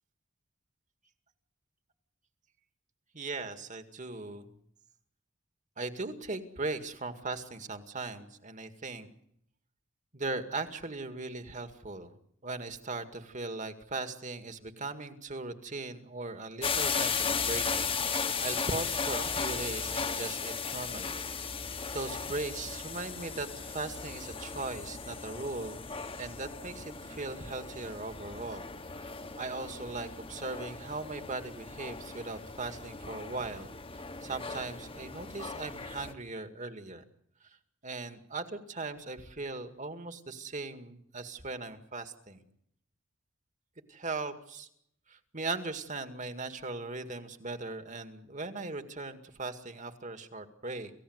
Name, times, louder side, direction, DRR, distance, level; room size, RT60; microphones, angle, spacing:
voice 1, 3.1-4.5 5.8-9.1 10.1-12.2 12.4-21.2 21.9-25.8 26.2-28.7 28.9-33.7 34.2-37.0 37.8-42.4 43.9-44.7 45.1-50.9, right 3 dB, 40° right, 8 dB, 2.1 m, -39 dB
sound 1, 16.6-36.1, left 5 dB, 30° left, 1.4 m, -36 dB
29.0 x 16.5 x 8.1 m, 0.74 s
head